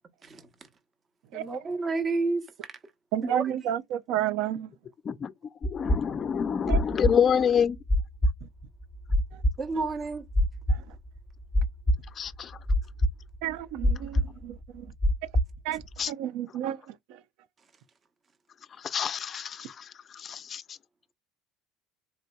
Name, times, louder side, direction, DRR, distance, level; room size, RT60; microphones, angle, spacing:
voice 1, 1.3-2.5 3.2-3.4 9.6-10.2, right 3 dB, 35° right, 0.9 m, -30 dB
voice 2, 3.1-4.7 6.7-6.8 8.4-8.5 9.3-9.4 10.7-11.0 13.4-14.9 15.2-15.3 15.6-17.2, right 11 dB, 70° right, 0.4 m, -32 dB
voice 3, 5.6-7.8 12.2-12.5 16.0-16.1 18.8-20.8, left 7 dB, 40° left, 0.3 m, -27 dB
sound 1, 5.6-16.0, equal, 15° left, 0.7 m, -26 dB
4.1 x 2.7 x 2.2 m
supercardioid pair, 90°, 0 cm